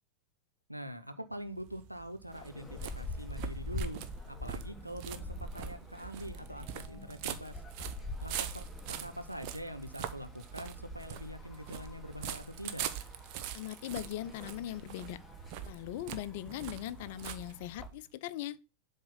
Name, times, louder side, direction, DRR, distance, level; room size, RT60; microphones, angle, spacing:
voice 1, 0.7-7.6 8.2-12.9, equal, 90° right, 0.9 m, -44 dB
sound 1, 1.5-18.0, right 10 dB, 45° right, 0.8 m, -44 dB
sound 2, 2.3-17.9, left 1 dB, 5° left, 1.2 m, -45 dB
voice 2, 13.5-15.2 15.6-18.6, left 13 dB, 50° left, 0.5 m, -40 dB
7.7 x 3.7 x 5.5 m
figure-of-eight pair, 90°, 0 cm